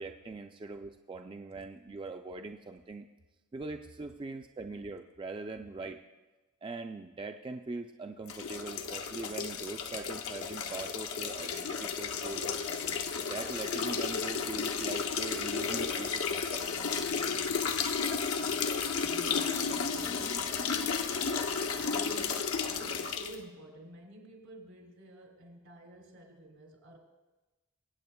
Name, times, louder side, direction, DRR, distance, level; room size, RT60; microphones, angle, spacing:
voice 1, 0.0-3.1 3.5-6.0 6.6-16.7, right 3 dB, 20° right, 5 dB, 0.3 m, -42 dB
sound 1, 8.3-23.4, left 6 dB, 75° left, 0.7 m, -33 dB
voice 2, 19.0-27.0, right 1 dB, 85° right, 1 dB, 2.8 m, -50 dB
22.5 x 8.4 x 2.2 m, 1.1 s
head